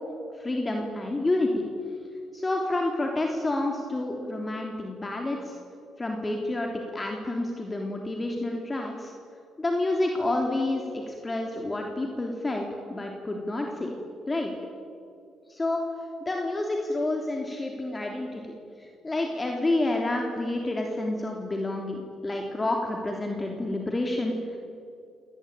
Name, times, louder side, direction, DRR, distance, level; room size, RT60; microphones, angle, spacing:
voice 1, 0.4-1.5 2.3-5.5 6.0-9.1 9.6-13.9 14.3-14.5 15.5-15.8 16.2-24.6, left 2 dB, 20° left, 1 dB, 3.3 m, -29 dB
28.0 x 19.0 x 9.1 m, 2.4 s
cardioid pair, 90°, 0 cm